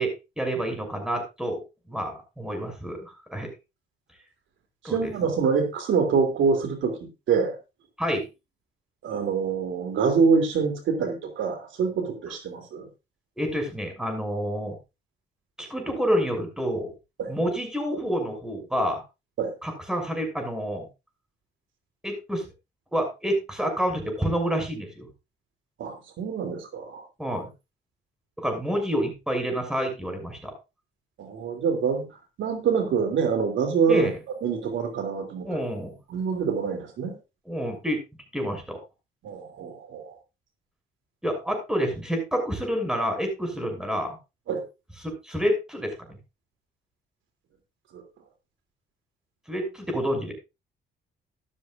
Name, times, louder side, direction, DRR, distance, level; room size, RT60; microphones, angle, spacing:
voice 1, 0.0-1.6 1.9-3.5 4.8-5.1 8.0-8.3 13.4-14.7 15.6-16.9 17.3-19.0 19.6-20.9 22.0-22.5 22.9-25.1 27.2-27.5 28.4-30.5 33.9-34.1 35.4-36.0 37.5-38.0 38.3-38.8 41.2-44.2 45.0-46.2 49.5-50.3, equal, 5° right, 3 dB, 6.4 m, -28 dB
voice 2, 4.8-7.0 7.3-7.6 9.0-12.9 17.2-17.3 19.4-19.5 25.8-27.0 31.2-32.0 32.4-34.1 34.4-35.6 36.1-37.2 39.2-40.1 44.5-44.6 47.9-48.0, right 5 dB, 75° right, 5 dB, 3.1 m, -25 dB
13.5 x 12.5 x 2.5 m, 0.26 s
cardioid pair, 90°, 20 cm